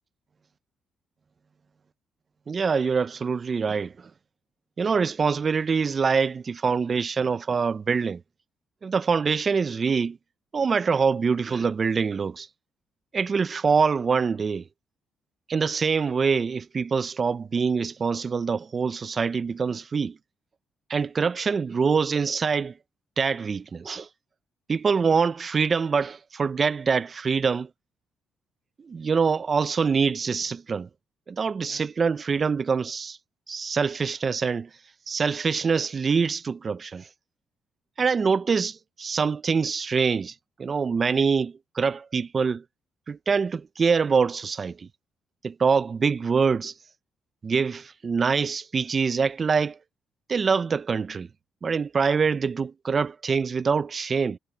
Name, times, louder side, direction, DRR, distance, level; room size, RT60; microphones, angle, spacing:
voice 1, 2.5-3.9 4.8-8.2 8.8-10.2 10.5-12.5 13.1-14.6 15.5-20.2 20.9-22.7 23.2-24.1 24.7-27.7 28.8-30.9 31.3-33.2 33.5-34.7 35.1-37.1 38.0-40.3 40.6-42.6 43.1-44.9 45.4-46.7 47.4-49.8 50.3-51.3 51.6-54.4, right 5 dB, 40° right, 0.6 m, -24 dB
cardioid pair, 90°, 0 cm